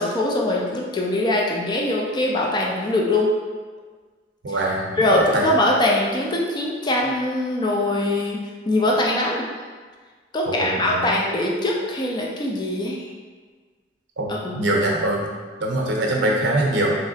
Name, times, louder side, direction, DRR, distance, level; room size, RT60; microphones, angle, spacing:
voice 1, 0.0-3.3 4.5-4.6 5.0-9.5 10.3-13.0 14.3-14.6, left 1 dB, 25° left, -2 dB, 0.4 m, -22 dB
voice 2, 4.4-5.5 10.5-11.1 14.2-14.3 14.6-15.3 15.6-17.0, right 1 dB, 85° right, -1 dB, 0.6 m, -23 dB
3.1 x 2.8 x 2.7 m, 1.5 s
head